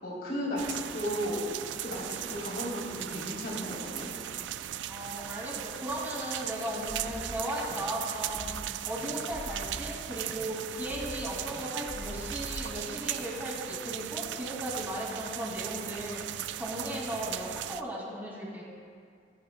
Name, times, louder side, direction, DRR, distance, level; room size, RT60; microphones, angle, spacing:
voice 1, 0.0-4.1, equal, 60° left, -5 dB, 3.3 m, -34 dB
sound 1, 0.6-17.8, right 12 dB, 85° right, 0.3 m, -38 dB
voice 2, 4.9-8.5 8.8-16.2 16.5-18.7, equal, 10° right, -5 dB, 2.3 m, -36 dB
sound 2, 6.9-7.4 7.7-7.8 8.2-8.7 9.0-10.0 10.3-10.4 10.8-12.7, equal, 15° left, 1.3 m, -43 dB
23.0 x 9.9 x 2.2 m, 2.2 s
head